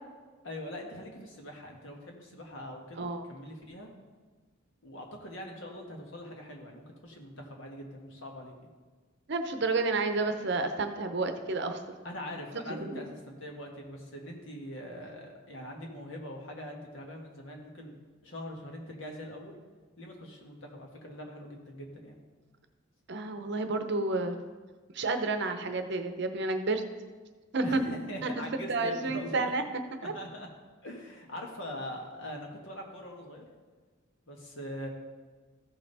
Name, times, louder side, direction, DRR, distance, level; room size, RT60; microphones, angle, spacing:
voice 1, 0.4-3.9 4.8-8.5 12.0-17.9 18.2-19.6 20.0-22.2 27.6-29.5 30.1-30.5 30.8-33.4 34.3-34.9, equal, 65° left, 0 dB, 1.7 m, -42 dB
voice 2, 3.0-3.3 9.3-11.8 12.7-13.0 23.1-24.3 24.9-26.8 27.5-27.8 28.2-28.4 28.7-29.6 30.0-30.1, right 3 dB, 60° right, 7 dB, 0.8 m, -30 dB
14.5 x 5.7 x 4.1 m, 1.4 s
head